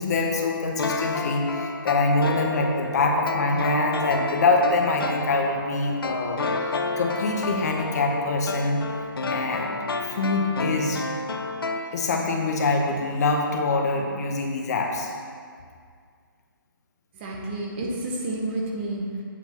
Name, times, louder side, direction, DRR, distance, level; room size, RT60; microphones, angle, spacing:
voice 1, 0.0-6.4 7.0-8.9 9.3-9.8 10.0-11.1 11.9-15.1, left 3 dB, 45° left, 2 dB, 1.0 m, -24 dB
sound 1, 0.8-12.4 12.7-12.8, left 3 dB, 80° left, 0.7 m, -31 dB
voice 2, 17.1-19.2, right 2 dB, 30° right, -1 dB, 1.1 m, -30 dB
8.2 x 7.9 x 3.0 m, 2.1 s
hypercardioid pair, 150°, 12 cm